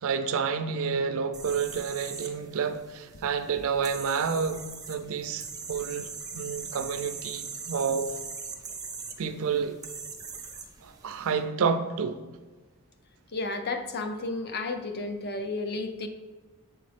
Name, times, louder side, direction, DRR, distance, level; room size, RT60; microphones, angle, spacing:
voice 1, 0.0-4.6 4.9-6.1 6.3-8.1 9.2-9.8 10.8-12.2, right 6 dB, 65° right, 0.4 m, -29 dB
sound 1, 1.3-11.3, right 5 dB, 15° right, 0.5 m, -41 dB
voice 2, 13.3-16.1, left 3 dB, 45° left, 0.5 m, -32 dB
7.6 x 4.1 x 3.3 m
head